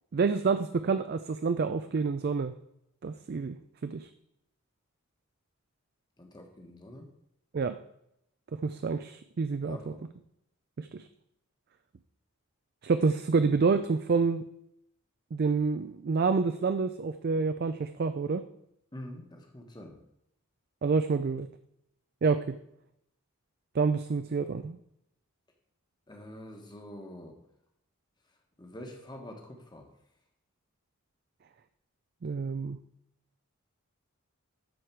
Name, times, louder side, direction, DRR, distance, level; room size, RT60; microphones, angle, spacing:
voice 1, 0.1-2.5 3.0-3.6 3.8-4.1 7.5-7.8 8.6-9.8 10.8-11.1 12.8-14.4 15.3-18.4 20.8-21.5 22.2-22.5 23.7-24.8 32.2-32.8, right 4 dB, 45° right, 10 dB, 0.3 m, -28 dB
voice 2, 6.2-7.1 9.6-10.1 18.9-20.0 26.1-27.4 28.6-29.9, left 1 dB, 20° left, 3 dB, 1.3 m, -45 dB
12.5 x 4.8 x 4.6 m, 0.77 s
head